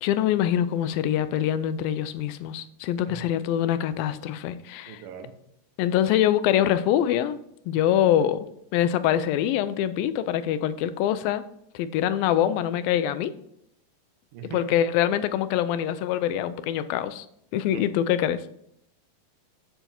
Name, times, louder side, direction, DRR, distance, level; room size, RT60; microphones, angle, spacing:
voice 1, 0.0-5.0 5.8-7.4 7.7-8.5 8.7-11.4 11.7-13.3 14.5-17.3 17.5-18.4, left 11 dB, 90° left, 13 dB, 2.4 m, -24 dB
voice 2, 4.9-5.3 14.3-14.6 17.7-17.9, right 8 dB, 75° right, 6 dB, 2.6 m, -40 dB
7.8 x 7.0 x 4.3 m, 0.73 s
omnidirectional pair, 4.1 m